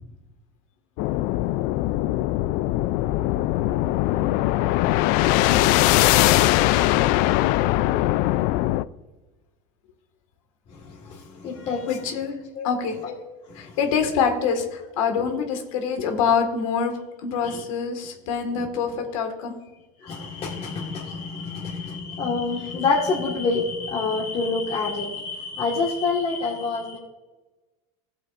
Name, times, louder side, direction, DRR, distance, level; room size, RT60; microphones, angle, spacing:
sound 1, 1.0-8.8, left 16 dB, 55° left, 0.4 m, -21 dB
voice 1, 10.7-11.9 12.5-12.7 13.0-13.1 13.5-13.8 17.5-17.6 18.6-18.7 20.0-27.0, left 4 dB, 35° left, -3 dB, 1.6 m, -27 dB
voice 2, 11.6-13.0 13.6-16.9 17.2-19.5, left 6 dB, 85° left, 5 dB, 1.8 m, -25 dB
16.0 x 7.6 x 2.5 m, 1.1 s
supercardioid pair, 130°, 17 cm